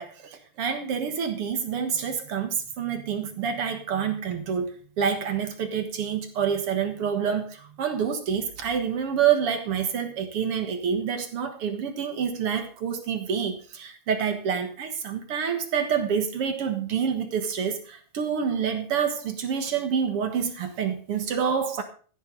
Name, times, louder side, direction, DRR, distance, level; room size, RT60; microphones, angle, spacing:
voice 1, 0.0-4.7 5.0-21.8, right 7 dB, 55° right, 1.8 m, -27 dB
14.5 x 11.0 x 3.9 m
omnidirectional pair, 4.1 m